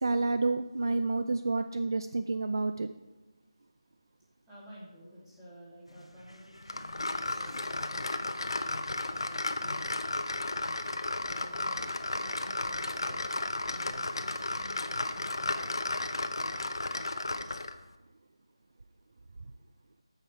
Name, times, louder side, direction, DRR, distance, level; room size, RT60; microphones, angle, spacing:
voice 1, 0.0-2.9, right 3 dB, 45° right, 9 dB, 0.4 m, -29 dB
voice 2, 4.5-8.5 9.1-9.9 11.2-13.3 13.7-15.9, equal, 5° right, -11 dB, 2.8 m, -52 dB
sound 1, 5.8-17.7, left 1 dB, 85° left, 1.0 m, -52 dB
sound 2, 6.7-17.8, left 2 dB, 55° left, 0.7 m, -34 dB
14.0 x 5.8 x 4.5 m, 1.1 s
figure-of-eight pair, 160°, 3 cm